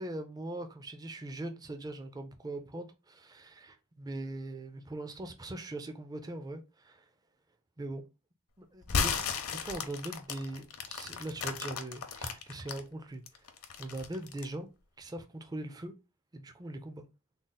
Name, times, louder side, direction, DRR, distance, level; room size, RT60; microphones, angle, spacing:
voice 1, 0.0-7.0 7.8-8.1 8.6-9.2 9.6-13.2 13.8-14.7 15.0-15.9 16.3-17.0, right 2 dB, 15° right, 0.4 m, -41 dB
sound 1, 8.8-12.8 13.3-14.5, left 6 dB, 70° left, 0.7 m, -34 dB
3.7 x 2.0 x 3.9 m
head